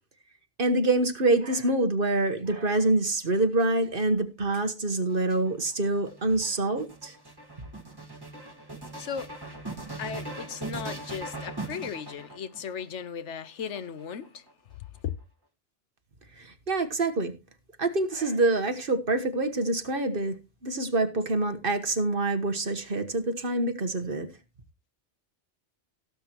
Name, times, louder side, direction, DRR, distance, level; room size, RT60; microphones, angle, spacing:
voice 1, 0.6-7.1 16.4-17.3 17.8-20.3 20.6-24.3, right 2 dB, 50° right, 1.5 m, -26 dB
sound 1, 4.9-12.8 13.6-14.5, right 2 dB, 20° right, 1.9 m, -40 dB
voice 2, 9.0-9.3 10.0-14.4 15.0-15.1, left 7 dB, 80° left, 1.2 m, -36 dB
17.5 x 8.0 x 3.0 m
omnidirectional pair, 1.2 m